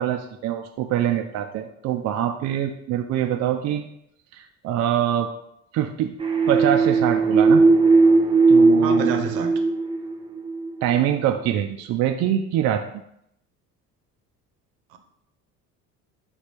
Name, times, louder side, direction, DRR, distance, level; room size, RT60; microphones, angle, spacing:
voice 1, 0.0-3.8 4.3-5.3 5.7-6.1 6.5-7.6 8.5-9.3 10.8-12.8, right 11 dB, 40° right, 4 dB, 0.4 m, -24 dB
sound 1, 6.2-10.7, right 3 dB, 10° right, 0.7 m, -18 dB
voice 2, 8.8-9.5 14.9-15.0, right 7 dB, 55° right, 6 dB, 0.8 m, -29 dB
5.2 x 2.4 x 4.3 m, 0.76 s
figure-of-eight pair, 55°, 45 cm